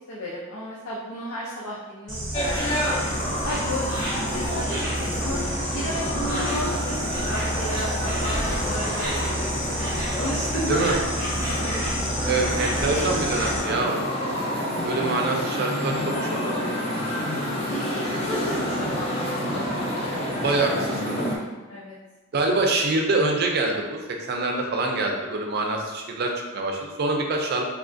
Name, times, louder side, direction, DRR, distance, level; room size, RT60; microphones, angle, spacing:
voice 1, 0.1-3.0 3.4-11.1 11.5-11.8 17.7-20.5 21.7-22.0, equal, 85° left, -5 dB, 0.5 m, -33 dB
Insect, 2.1-13.6, equal, 10° right, 0.8 m, -29 dB
sound 1, 2.3-21.4, equal, 30° left, 0.5 m, -29 dB
voice 2, 10.5-11.0 12.2-14.1 14.8-16.1 16.5-16.6 20.4-21.3 22.3-27.7, right 2 dB, 45° right, 2 dB, 0.4 m, -25 dB
3.4 x 2.4 x 2.5 m, 1.2 s
head